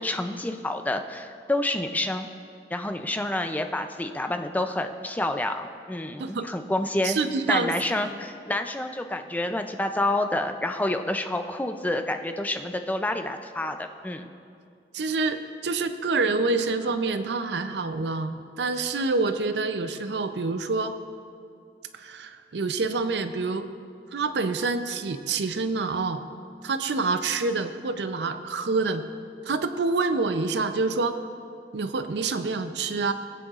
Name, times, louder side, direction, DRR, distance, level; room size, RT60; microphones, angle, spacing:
voice 1, 0.0-2.3 2.7-7.2 7.5-14.3, left 1 dB, 10° left, 6 dB, 0.4 m, -28 dB
voice 2, 6.2-6.5 7.0-8.1 14.9-21.0 21.9-23.7 24.1-26.2 26.6-29.0 29.4-31.2 31.7-33.1, right 3 dB, 65° right, 10 dB, 0.5 m, -27 dB
20.5 x 9.1 x 2.4 m, 2.4 s
head